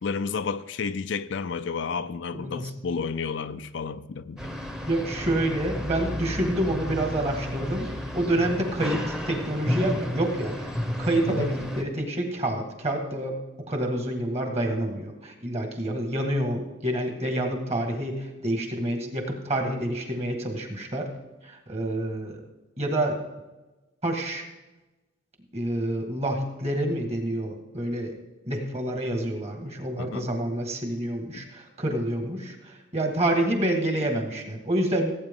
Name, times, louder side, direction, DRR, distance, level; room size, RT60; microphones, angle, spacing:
voice 1, 0.0-4.5 11.3-11.5 30.0-30.3 31.3-31.4, left 5 dB, 60° left, 0.4 m, -31 dB
voice 2, 2.4-2.7 4.9-13.4 13.7-21.1 21.4-22.4 22.8-23.2 24.0-24.5 25.5-28.1 28.5-35.1, right 1 dB, 30° right, 1.9 m, -28 dB
sound 1, 4.4-11.8, equal, 5° right, 0.9 m, -32 dB
16.5 x 8.6 x 3.7 m
head